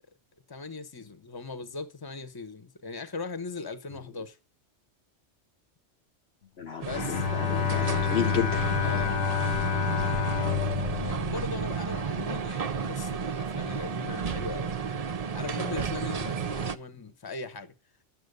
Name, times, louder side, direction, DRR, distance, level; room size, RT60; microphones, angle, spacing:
voice 1, 0.5-4.4 6.8-7.3 8.8-9.2 10.3-17.7, left 4 dB, 20° left, 1.0 m, -39 dB
voice 2, 6.6-8.6, left 8 dB, 70° left, 1.2 m, -31 dB
sound 1, 6.8-16.8, right 6 dB, 40° right, 0.6 m, -32 dB
Bowed string instrument, 6.9-12.2, left 9 dB, 85° left, 1.2 m, -29 dB
11.0 x 7.7 x 6.7 m
omnidirectional pair, 1.2 m